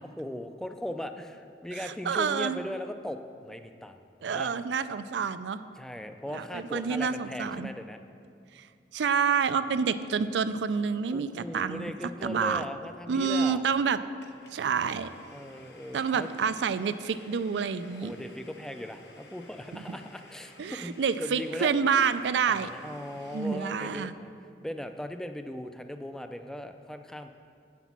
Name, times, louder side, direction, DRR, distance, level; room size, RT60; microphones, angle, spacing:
voice 1, 0.0-4.0 4.3-4.6 5.8-8.0 11.1-13.6 15.3-16.3 18.0-21.7 22.5-24.3 24.6-27.3, left 1 dB, 5° left, 7 dB, 0.4 m, -38 dB
voice 2, 1.8-2.6 4.2-5.6 6.3-7.7 8.6-8.7 8.9-11.9 12.2-12.6 13.1-14.0 14.5-15.1 15.9-18.1 19.7-20.0 20.6-22.7 23.3-24.1, right 6 dB, 80° right, 13 dB, 0.4 m, -28 dB
Domestic sounds home sounds, 14.2-24.2, left 2 dB, 75° left, 1.2 m, -54 dB
8.0 x 6.0 x 7.2 m, 2.3 s
head